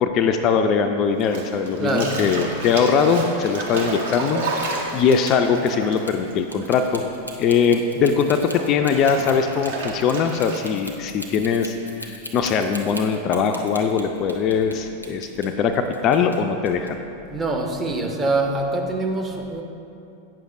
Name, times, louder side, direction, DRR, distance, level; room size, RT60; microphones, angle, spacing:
voice 1, 0.0-4.4 4.9-7.0 7.4-17.0, left 6 dB, 35° left, 0.3 m, -21 dB
Bathtub (filling or washing), 1.2-7.0 7.3-10.9, right 3 dB, 60° right, 0.9 m, -31 dB
voice 2, 1.8-2.3 17.3-19.6, right 2 dB, 15° right, 0.6 m, -24 dB
sound 1, 5.9-14.8 15.0-16.4 16.7-16.9, equal, 90° right, 0.5 m, -38 dB
8.8 x 6.4 x 2.5 m
figure-of-eight pair, 90°, 0 cm